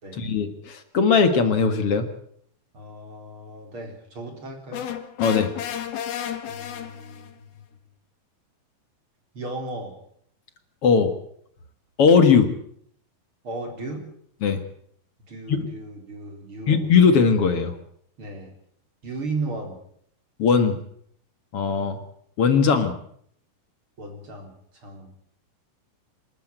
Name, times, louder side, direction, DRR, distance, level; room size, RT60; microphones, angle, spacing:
voice 1, 0.2-2.1 5.2-5.5 10.8-11.1 12.0-12.5 14.4-14.6 15.5-15.6 16.7-17.7 20.4-20.8 21.5-22.0 22.4-22.9, left 5 dB, 50° left, 9 dB, 2.1 m, -19 dB
voice 2, 2.7-4.8 6.5-7.3 9.3-10.0 13.4-14.0 15.3-16.9 18.2-18.5 19.0-19.8 24.0-25.1, right 2 dB, 35° right, 3 dB, 4.6 m, -35 dB
sound 1, 4.7-7.3, left 9 dB, 85° left, 3.6 m, -32 dB
27.0 x 12.5 x 9.0 m, 0.67 s
omnidirectional pair, 4.2 m